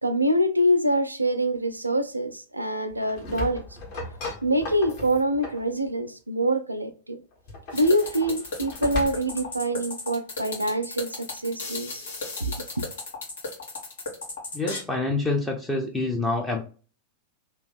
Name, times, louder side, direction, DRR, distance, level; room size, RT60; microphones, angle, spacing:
voice 1, 0.0-3.6 4.4-7.2 7.7-12.0 12.4-12.9, right 1 dB, 85° right, 0.4 m, -25 dB
sound 1, 2.9-5.7 7.3-9.5, left 3 dB, 45° left, 1.3 m, -37 dB
sound 2, 7.7-14.8, left 3 dB, 65° left, 1.3 m, -35 dB
voice 2, 14.5-16.6, left 2 dB, 10° left, 0.6 m, -26 dB
2.9 x 2.6 x 3.5 m
figure-of-eight pair, 90°, 0 cm